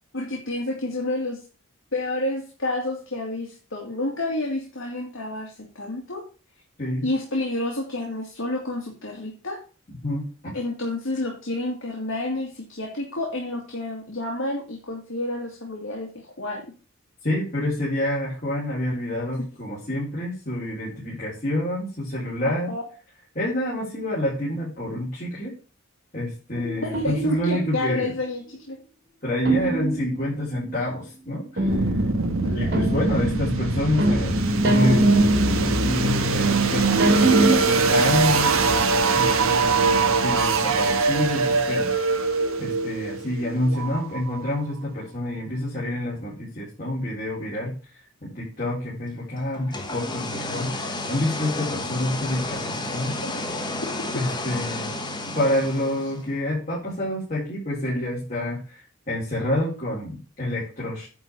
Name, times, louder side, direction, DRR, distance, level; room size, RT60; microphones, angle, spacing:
voice 1, 0.1-1.4 1.9-6.2 7.0-9.6 10.5-16.1 16.4-16.6 22.4-22.8 26.8-28.8 29.6-30.0 32.4-32.7 53.2-53.3, left 2 dB, 70° left, 0 dB, 2.3 m, -29 dB
voice 2, 10.0-10.5 17.2-22.7 23.3-25.5 26.1-28.1 29.2-31.7 32.5-35.2 35.6-38.6 39.2-41.9 42.6-47.7 48.2-53.2 54.1-54.9 55.3-58.8 59.1-61.1, left 1 dB, 40° left, -7 dB, 4.2 m, -28 dB
sound 1, 26.5-27.9 29.5-30.7 31.6-37.6, right 2 dB, 55° right, 2.5 m, -24 dB
sound 2, 31.7-44.5, right 4 dB, 80° right, 1.4 m, -22 dB
sound 3, 49.5-56.3, left 2 dB, 20° left, 1.1 m, -31 dB
10.0 x 4.2 x 7.0 m, 0.36 s
head